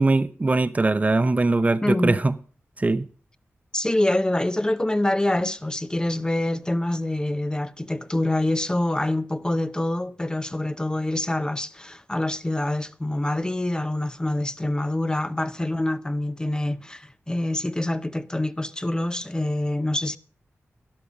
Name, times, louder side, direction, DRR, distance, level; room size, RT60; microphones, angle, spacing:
voice 1, 0.0-2.3 2.8-3.0, right 3 dB, 30° right, 0.6 m, -21 dB
voice 2, 1.8-2.2 3.7-20.2, left 1 dB, 15° left, 0.6 m, -26 dB
12.5 x 12.0 x 4.9 m
wide cardioid pair, 85°, 5 cm